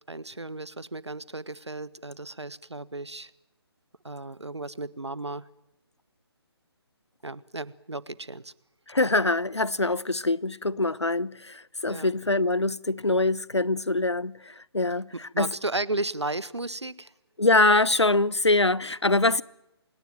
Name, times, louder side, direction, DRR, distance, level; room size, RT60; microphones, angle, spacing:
voice 1, 0.1-3.3 4.0-5.4 7.2-8.5 11.9-12.1 15.3-17.1, right 2 dB, 85° right, 1.2 m, -34 dB
voice 2, 8.9-15.5 17.4-19.4, left 2 dB, 85° left, 1.0 m, -24 dB
27.0 x 18.0 x 9.1 m
figure-of-eight pair, 145°, 14 cm